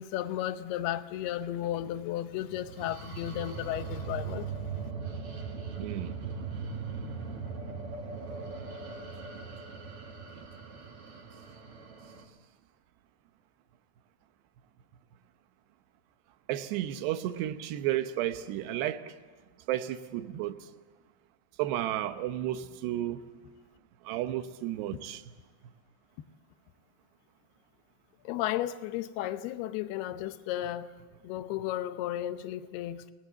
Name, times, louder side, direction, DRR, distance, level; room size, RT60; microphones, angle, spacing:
voice 1, 0.0-4.5 28.2-30.9 31.2-33.1, left 12 dB, 75° left, 2.8 m, -34 dB
sound 1, 2.5-12.2, right 5 dB, 45° right, 2.2 m, -39 dB
voice 2, 5.8-6.1 9.3-9.4 16.5-19.1 19.7-20.6 21.6-23.2 24.1-25.2, right 13 dB, 80° right, 3.1 m, -32 dB
28.5 x 19.0 x 8.1 m
omnidirectional pair, 4.8 m